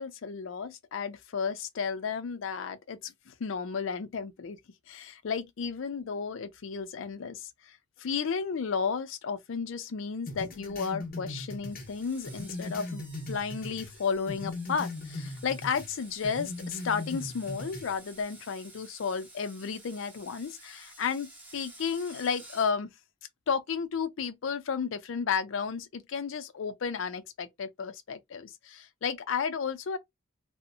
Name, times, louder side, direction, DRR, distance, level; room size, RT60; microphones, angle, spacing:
voice 1, 0.0-4.6 4.9-22.9 23.5-30.0, left 6 dB, 70° left, 0.4 m, -33 dB
sound 1, 10.3-13.9 14.3-15.9 16.2-17.9, left 2 dB, 45° left, 0.8 m, -39 dB
Screech, 11.7-22.7, right 2 dB, 10° right, 0.7 m, -52 dB
2.6 x 2.0 x 2.6 m
head